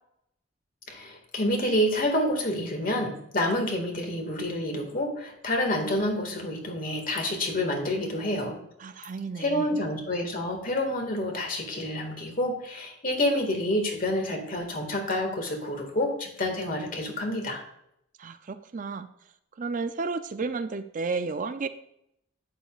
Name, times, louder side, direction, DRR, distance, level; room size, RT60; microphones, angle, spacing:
voice 1, 0.9-8.6 9.4-17.6, left 1 dB, 45° left, 3 dB, 1.9 m, -28 dB
voice 2, 8.8-9.7 18.2-19.1 19.6-21.7, right 4 dB, 40° right, 10 dB, 0.5 m, -32 dB
11.0 x 8.8 x 2.4 m, 0.76 s
head